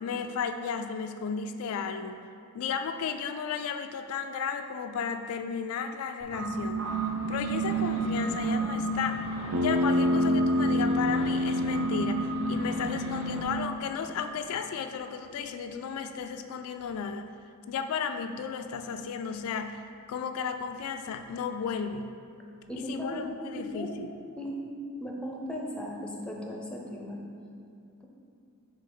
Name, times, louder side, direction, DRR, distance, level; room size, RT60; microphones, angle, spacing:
voice 1, 0.0-2.2 2.5-6.8 7.3-9.2 9.5-17.3 17.7-19.8 20.1-22.1 22.9-24.1, left 6 dB, 75° left, 7 dB, 0.3 m, -34 dB
sound 1, 6.2-13.4, right 3 dB, 65° right, 1.0 m, -32 dB
Bass guitar, 9.5-13.8, left 1 dB, 85° right, 0.6 m, -27 dB
voice 2, 22.7-23.2 23.5-24.0 24.4-24.6 25.0-27.2, equal, 5° left, -1 dB, 0.6 m, -36 dB
5.5 x 3.3 x 5.3 m, 2.5 s
head